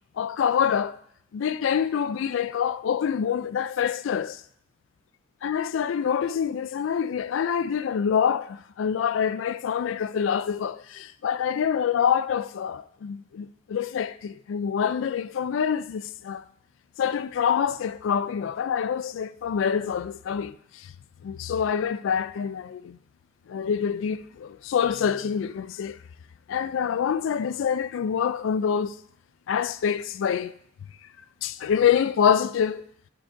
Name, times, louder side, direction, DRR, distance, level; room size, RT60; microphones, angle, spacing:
voice 1, 0.2-1.0 1.3-4.4 5.4-16.4 17.0-20.9 21.2-23.0 23.5-26.0 26.5-29.0 29.5-30.5 31.4-32.8, left 7 dB, 70° left, 0.3 m, -26 dB
11.0 x 4.8 x 2.5 m
head